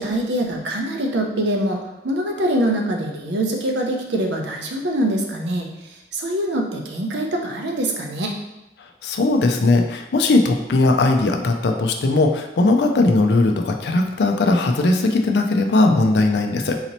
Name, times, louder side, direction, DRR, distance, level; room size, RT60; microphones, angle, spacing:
voice 1, 0.0-5.7 6.1-8.4, right 1 dB, 75° right, 1 dB, 0.6 m, -24 dB
voice 2, 9.0-16.8, left 2 dB, 70° left, 4 dB, 0.4 m, -18 dB
4.0 x 2.8 x 2.9 m, 0.96 s
head